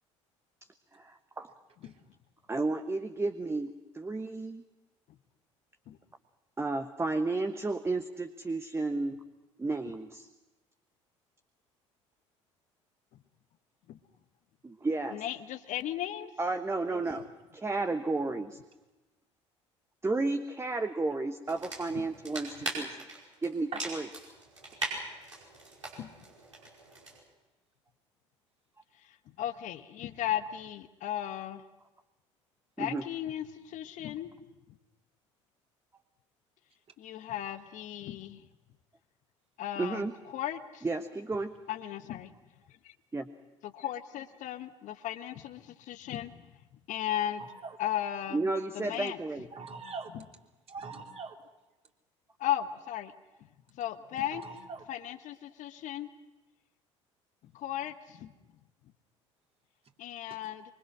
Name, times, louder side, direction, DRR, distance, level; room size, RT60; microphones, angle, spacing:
voice 1, 0.9-1.5 2.5-4.6 6.6-9.2 9.6-10.3 14.6-15.2 16.4-17.3 17.5-18.6 20.0-23.0 23.4-24.1 32.8-33.0 39.8-40.1 40.8-41.5 43.1-43.3 48.3-49.5, right 3 dB, 15° right, 7 dB, 1.2 m, -32 dB
voice 2, 15.1-16.3 22.0-22.1 26.0-26.1 29.4-31.6 32.8-34.3 37.0-38.4 39.6-40.1 40.3-40.8 41.7-42.3 43.6-46.4 46.9-47.4 47.8-48.4 48.7-49.2 50.1-50.2 52.4-53.1 53.8-54.4 54.9-56.1 57.5-58.3 60.0-60.6, left 11 dB, 50° left, 9 dB, 1.2 m, -36 dB
sound 1, 21.5-27.2, right 2 dB, 90° right, 5.3 m, -40 dB
voice 3, 47.4-47.8 49.5-50.1 50.7-51.4 54.3-54.8, right 5 dB, 40° right, 1 dB, 3.4 m, -42 dB
24.5 x 24.5 x 6.2 m, 1.1 s
figure-of-eight pair, 55°, 16 cm